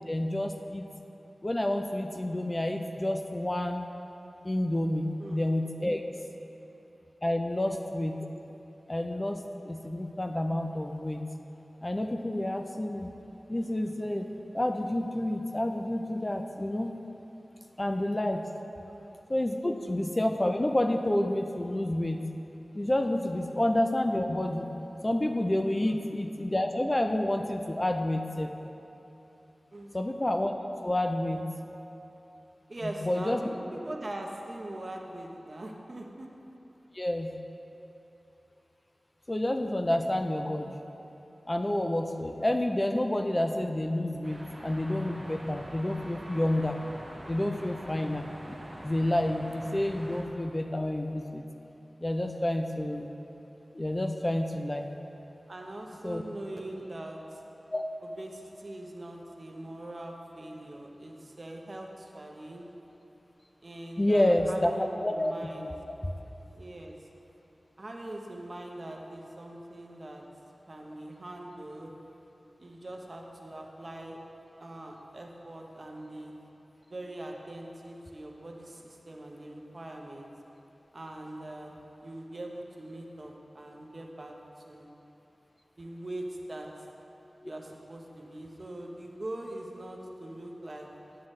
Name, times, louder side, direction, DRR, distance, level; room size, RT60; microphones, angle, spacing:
voice 1, 0.1-0.9 1.4-3.9 4.4-6.0 7.2-8.2 8.9-11.2 11.8-13.1 13.5-14.3 14.5-16.9 17.8-18.5 19.3-22.2 22.7-24.7 25.0-28.5 29.9-30.5 30.8-31.4 32.8-33.4 36.9-37.3 39.3-40.8 41.5-46.8 47.3-48.5 48.8-51.4 52.0-53.1 53.7-54.9 56.0-56.2 57.7-57.8 64.0-64.7 65.0-65.3 66.0-66.1, left 1 dB, 25° left, 5 dB, 0.4 m, -29 dB
voice 2, 32.7-36.3 47.9-48.1 55.5-57.4 58.2-62.7 63.6-65.7 66.5-66.9 67.8-70.2 70.7-71.9 72.6-74.2 74.6-76.3 76.9-80.3 80.9-81.8 82.0-84.3 84.7-84.9 85.8-86.7 87.4-90.9, right 1 dB, 45° right, 1 dB, 0.8 m, -42 dB
sound 1, 44.2-50.2, right 1 dB, 30° right, 1.2 m, -45 dB
9.3 x 7.5 x 3.2 m, 3.0 s
wide cardioid pair, 75°, 0 cm